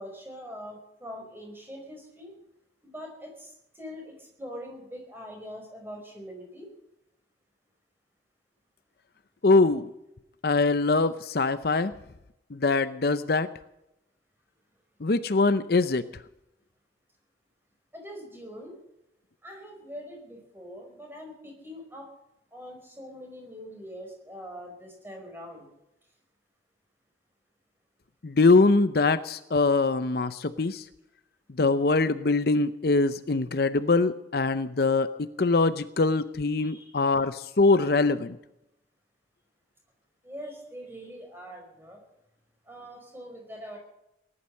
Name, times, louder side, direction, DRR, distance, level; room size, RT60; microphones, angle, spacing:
voice 1, 0.0-2.3 2.8-6.7 17.9-18.8 19.4-22.1 22.5-25.7 36.6-37.2 40.2-42.0 42.6-43.8, equal, 10° right, 2 dB, 5.1 m, -43 dB
voice 2, 9.4-9.9 10.4-11.9 12.5-13.5 15.0-16.0 28.2-30.8 31.6-35.1 35.4-38.4, left 3 dB, 55° left, 12 dB, 0.6 m, -23 dB
19.0 x 11.5 x 6.5 m, 0.86 s
head